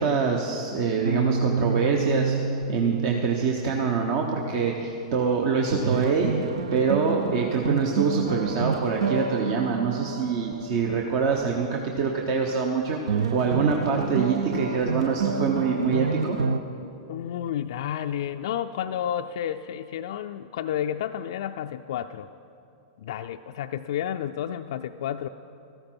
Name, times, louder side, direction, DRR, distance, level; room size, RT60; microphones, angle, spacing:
voice 1, 0.0-6.3 6.7-16.4, right 5 dB, 55° right, 1 dB, 1.1 m, -25 dB
sound 1, 1.0-4.8 5.1-5.2 5.7-11.5 13.1-16.6, right 5 dB, 75° right, 0.6 m, -29 dB
voice 2, 17.1-22.3 23.0-25.3, left 10 dB, 65° left, 6 dB, 0.3 m, -31 dB
14.5 x 13.0 x 4.5 m, 2.7 s
hypercardioid pair, 105°, 3 cm